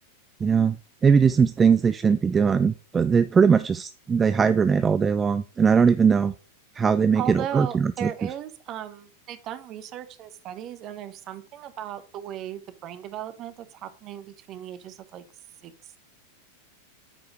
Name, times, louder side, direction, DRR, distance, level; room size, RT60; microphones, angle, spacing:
voice 1, 0.4-0.8 1.0-6.3 6.7-8.1, right 6 dB, 20° right, 14 dB, 0.3 m, -20 dB
voice 2, 7.1-15.2 15.6-16.0, right 10 dB, 35° right, 11 dB, 1.0 m, -37 dB
9.1 x 4.8 x 4.6 m, 0.33 s
figure-of-eight pair, 90°, 0 cm